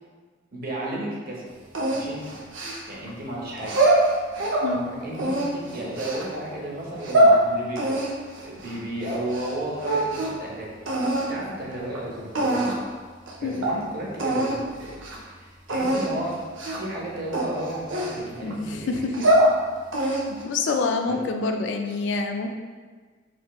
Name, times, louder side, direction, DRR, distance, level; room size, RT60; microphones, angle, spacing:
voice 1, 0.5-1.5 1.9-2.4 2.9-3.8 4.7-8.0 8.4-12.7 13.4-14.9 15.2-16.3 16.8-18.9 21.0-21.2, right 1 dB, 50° right, -4 dB, 0.8 m, -33 dB
sound 1, 1.7-3.1 3.6-4.7 5.1-6.2 6.8-7.4 7.8-9.5 9.8-10.4 10.9-11.3 11.9-12.0 12.3-12.9 13.3-13.4 13.6-13.8 14.2-14.6 14.9-15.2 15.7-16.1 16.6-16.9 17.3-18.5 19.0-19.5 19.9-20.4, right 1 dB, 80° right, 0.7 m, -23 dB
voice 2, 18.4-19.3 20.0-22.5, left 3 dB, 65° left, 5 dB, 0.3 m, -27 dB
4.2 x 2.9 x 2.3 m, 1.4 s
head